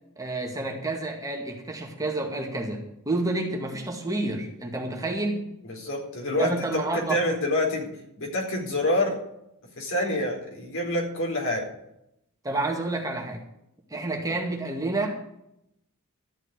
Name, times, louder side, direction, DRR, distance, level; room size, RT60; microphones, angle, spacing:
voice 1, 0.2-5.5 6.3-7.2 12.4-13.4 13.9-15.2, right 2 dB, 15° right, 0 dB, 2.1 m, -29 dB
voice 2, 5.6-7.9 8.2-9.2 9.8-11.7, left 1 dB, 65° left, -1 dB, 4.3 m, -27 dB
13.5 x 5.8 x 9.5 m, 0.79 s
head